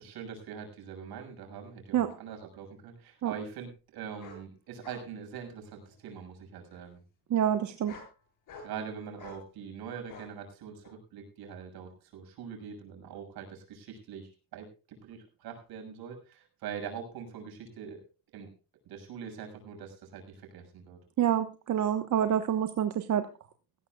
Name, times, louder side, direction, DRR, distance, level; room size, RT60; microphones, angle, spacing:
voice 1, 0.0-7.0 8.6-18.0 18.3-18.5 18.9-21.0, right 7 dB, 65° right, 4 dB, 6.6 m, -43 dB
sound 1, 2.1-2.2 4.2-4.4 4.8-5.1 5.4-6.0 6.7-6.8 7.7-8.1 8.5-8.8 9.2-9.4 10.1-10.3 10.8-10.9, left 4 dB, 50° left, 7.0 m, -49 dB
voice 2, 7.3-8.0 21.2-23.3, right 9 dB, 45° right, 8 dB, 1.3 m, -27 dB
19.0 x 17.0 x 2.4 m, 0.32 s
cardioid pair, 135°, 40 cm